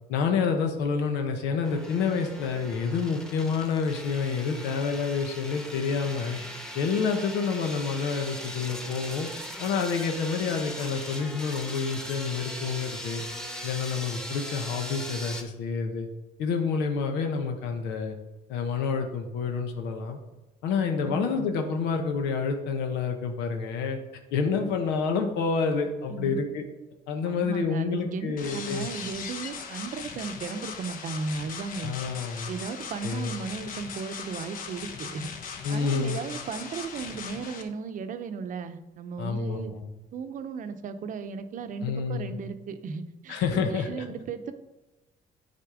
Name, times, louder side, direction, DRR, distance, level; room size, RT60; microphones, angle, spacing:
voice 1, 0.1-6.4 6.7-9.3 9.6-13.2 13.6-16.1 16.4-18.1 18.5-20.2 20.6-24.0 24.3-26.6 27.1-28.9 31.8-32.5 33.0-33.3 35.6-36.2 39.2-39.8 41.8-42.3 43.3-44.0, left 5 dB, 90° left, 4 dB, 1.0 m, -28 dB
sound 1, 1.6-15.4, equal, 5° left, 1.1 m, -39 dB
voice 2, 21.0-21.4 26.1-26.4 27.2-31.9 32.5-35.3 35.7-39.7 40.1-44.5, right 5 dB, 50° right, 9 dB, 0.8 m, -36 dB
sound 2, 28.4-37.6, left 6 dB, 55° left, 1.1 m, -39 dB
9.6 x 4.3 x 4.9 m, 1.1 s
cardioid pair, 110°, 17 cm